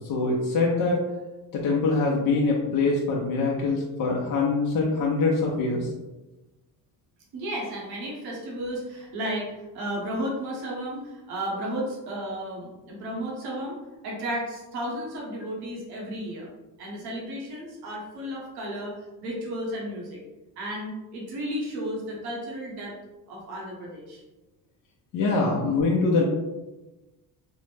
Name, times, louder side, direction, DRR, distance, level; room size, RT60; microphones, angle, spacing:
voice 1, 0.1-1.0 1.5-5.9 25.1-26.2, left 3 dB, 55° left, -3 dB, 0.6 m, -24 dB
voice 2, 7.3-9.5 9.7-13.8 14.0-16.5 16.8-20.2 20.6-22.9 23.3-24.2, equal, 75° right, -3 dB, 1.1 m, -33 dB
3.6 x 2.1 x 3.3 m, 1.1 s
cardioid pair, 130°, 38 cm